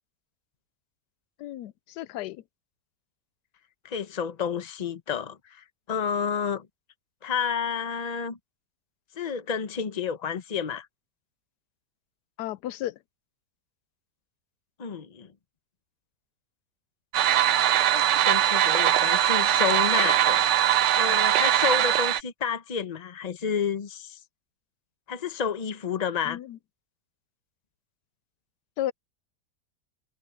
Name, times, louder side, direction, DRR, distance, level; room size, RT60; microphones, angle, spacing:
voice 1, 1.4-2.4 12.4-13.0 26.2-26.6 28.8-28.9, left 13 dB, 85° left, 1.2 m, -33 dB
voice 2, 3.8-6.7 7.2-8.4 9.2-10.9 14.8-15.3 17.9-24.2 25.1-26.4, left 7 dB, 30° left, 0.9 m, -30 dB
sound 1, 17.1-22.2, right 11 dB, 60° right, 0.8 m, -21 dB
omnidirectional pair, 1.7 m